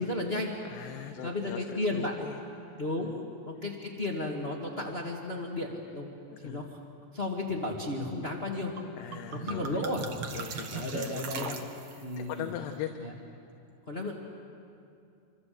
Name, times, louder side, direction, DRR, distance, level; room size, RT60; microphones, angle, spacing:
voice 1, 0.0-0.5 1.2-2.2 2.8-3.1 3.4-6.1 6.4-6.8 7.1-8.7 9.3-10.1 10.7-11.6 12.0-12.5 13.0-13.1 13.9-14.1, left 2 dB, 30° left, 0 dB, 1.1 m, -33 dB
voice 2, 0.6-2.4 3.0-3.2 6.3-6.7 9.0-9.8 10.3-13.0, left 10 dB, 75° left, 4 dB, 3.0 m, -41 dB
sound 1, 8.8-8.9 9.1-12.1, right 5 dB, 85° right, 1.2 m, -39 dB
27.5 x 26.0 x 7.8 m, 2.5 s
omnidirectional pair, 4.9 m